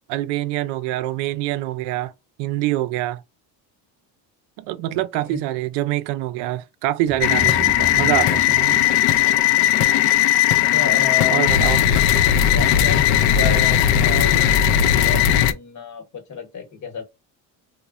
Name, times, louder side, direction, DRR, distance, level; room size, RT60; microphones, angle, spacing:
voice 1, 0.1-2.1 2.4-3.2 4.6-8.9 11.3-11.8, right 15 dB, 75° right, 0.5 m, -25 dB
voice 2, 4.9-5.4 10.6-11.5 12.5-17.0, left 6 dB, 45° left, 1.1 m, -31 dB
sound 1, 7.1-9.4, equal, 20° right, 0.4 m, -34 dB
sound 2, 7.2-15.5, left 10 dB, 65° left, 0.5 m, -17 dB
3.1 x 2.2 x 2.4 m
cardioid pair, 130°, 40 cm